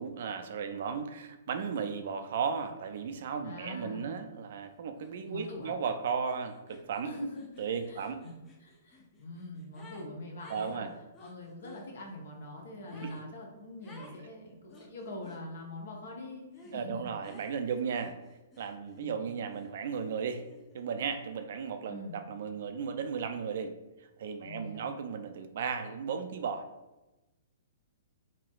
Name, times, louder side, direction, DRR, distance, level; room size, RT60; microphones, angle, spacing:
voice 1, 0.0-7.1 7.6-8.2 10.5-10.9 13.0-13.1 16.7-18.1 18.6-20.4 20.7-23.7 24.0-26.7, right 6 dB, 60° right, 8 dB, 0.3 m, -35 dB
voice 2, 3.4-4.2 5.3-5.7 7.0-7.5 7.9-10.9 11.2-17.1 18.9-19.2 21.9-22.2 24.4-24.9, left 1 dB, 70° left, 0 dB, 0.8 m, -43 dB
sound 1, 5.0-5.1 5.4-10.1 10.4-11.9 12.9-13.3 13.8-14.2 14.7-15.4 16.5-16.8 17.2-19.1 19.5-20.9, left 1 dB, 25° left, 0.5 m, -55 dB
3.2 x 2.8 x 2.3 m, 1.0 s
hypercardioid pair, 120°, 0 cm